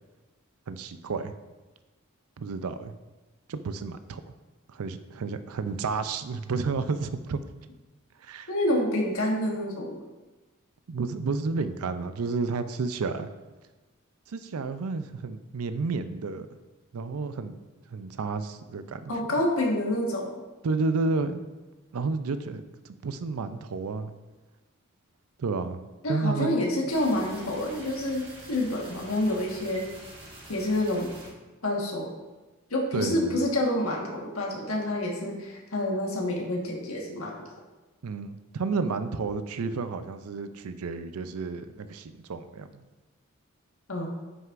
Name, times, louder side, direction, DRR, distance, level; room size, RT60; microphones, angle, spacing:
voice 1, 0.7-1.3 2.4-2.9 3.5-4.2 4.7-7.4 8.2-8.5 10.9-13.3 14.3-16.5 16.9-17.5 17.9-19.1 20.6-21.4 21.9-24.1 25.4-25.8 26.1-26.6 32.9-33.5 38.0-42.7, right 4 dB, 90° right, 11 dB, 0.5 m, -31 dB
voice 2, 8.5-10.0 19.1-20.3 26.0-29.9 30.5-31.1 31.6-32.1 32.7-37.4 43.9-44.1, left 1 dB, 75° left, -1 dB, 1.5 m, -28 dB
sound 1, 26.9-31.3, right 1 dB, 25° right, 1.5 m, -46 dB
9.1 x 6.4 x 2.5 m, 1.2 s
head